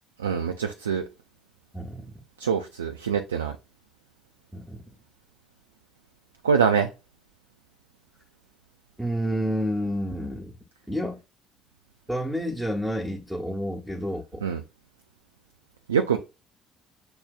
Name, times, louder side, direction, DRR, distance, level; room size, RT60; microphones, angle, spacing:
voice 1, 0.2-1.1 2.4-3.5 6.4-6.9 14.4-14.6 15.9-16.2, right 6 dB, 80° right, 0.3 m, -24 dB
voice 2, 1.7-2.2 4.5-4.8 9.0-10.5 10.9-11.2 12.1-14.4, equal, ahead, 1.0 m, -29 dB
6.0 x 2.7 x 2.2 m
figure-of-eight pair, 55°, 0 cm